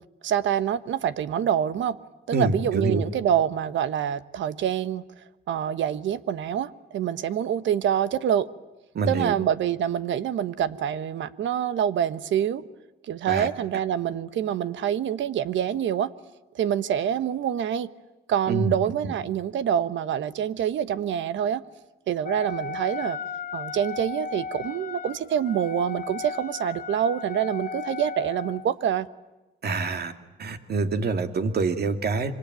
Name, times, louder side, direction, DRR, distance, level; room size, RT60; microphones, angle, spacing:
voice 1, 0.2-2.0 2.3-5.0 5.5-8.5 9.1-12.6 13.0-16.1 16.5-17.9 18.3-21.6 22.1-23.2 23.5-29.1, right 9 dB, 70° right, 13 dB, 1.2 m, -26 dB
voice 2, 2.3-3.0 8.9-9.3 13.3-13.5 18.5-18.8 19.0-19.1 29.6-30.1 30.4-32.3, right 3 dB, 55° right, 7 dB, 2.4 m, -26 dB
Wind instrument woodwind instrument, 22.2-28.7, left 6 dB, 45° left, 1.0 m, -36 dB
26.0 x 24.5 x 9.1 m, 1.1 s
cardioid pair, 90°, 20 cm